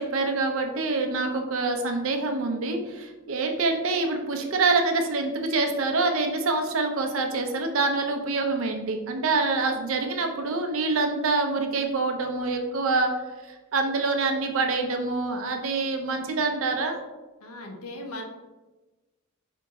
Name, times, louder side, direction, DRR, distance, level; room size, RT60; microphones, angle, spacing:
voice 1, 0.0-13.1 13.7-17.0, right 3 dB, 65° right, 4 dB, 0.6 m, -26 dB
voice 2, 17.4-18.2, left 1 dB, 90° left, 2 dB, 0.8 m, -38 dB
4.5 x 3.0 x 3.5 m, 1.2 s
head